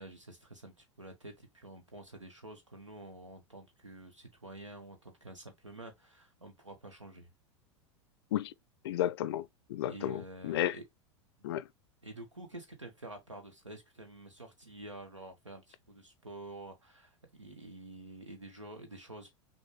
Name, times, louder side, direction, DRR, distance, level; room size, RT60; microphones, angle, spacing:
voice 1, 0.0-7.3 9.9-10.8 11.4-11.5 12.0-19.4, right 2 dB, 85° right, 1.0 m, -49 dB
voice 2, 8.8-10.7 11.4-11.6, left 12 dB, 55° left, 0.4 m, -33 dB
6.2 x 2.2 x 3.1 m
figure-of-eight pair, 85°, 15 cm